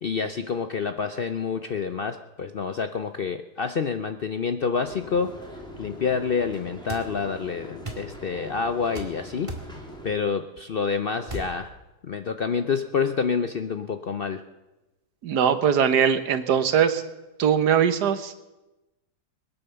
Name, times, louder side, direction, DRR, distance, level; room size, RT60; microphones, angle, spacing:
voice 1, 0.0-5.3 5.8-9.5 10.0-11.7 12.0-14.4, left 5 dB, 55° left, 8 dB, 0.6 m, -28 dB
sound 1, 4.8-10.2, left 1 dB, 5° left, 2.2 m, -42 dB
sound 2, 6.9-7.1 7.8-8.1 8.9-9.1 9.5-9.7 11.3-11.5, right 2 dB, 20° right, 1.9 m, -35 dB
voice 2, 15.2-17.0 17.4-18.5, right 8 dB, 85° right, 11 dB, 1.6 m, -21 dB
21.5 x 9.4 x 6.9 m, 1.0 s
omnidirectional pair, 1.7 m